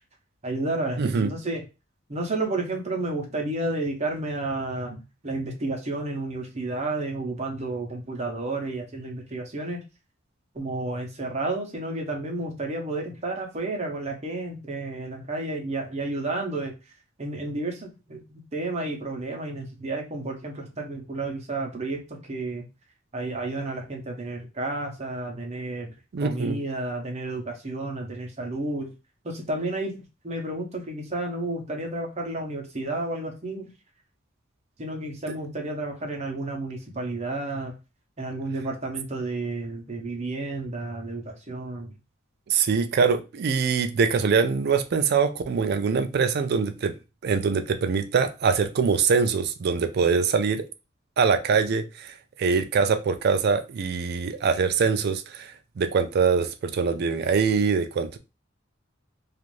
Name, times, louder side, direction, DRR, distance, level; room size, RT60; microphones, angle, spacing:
voice 1, 0.4-1.6 2.1-9.8 10.5-16.7 17.2-22.7 23.1-25.9 26.2-28.9 29.2-33.7 34.8-37.7 38.2-41.9, right 2 dB, 35° right, 0.7 m, -31 dB
voice 2, 1.0-1.3 26.1-26.6 35.3-35.4 42.5-47.0 47.2-50.7 51.2-52.1 52.4-58.2, right 5 dB, 55° right, 0.4 m, -23 dB
2.5 x 2.5 x 3.0 m
head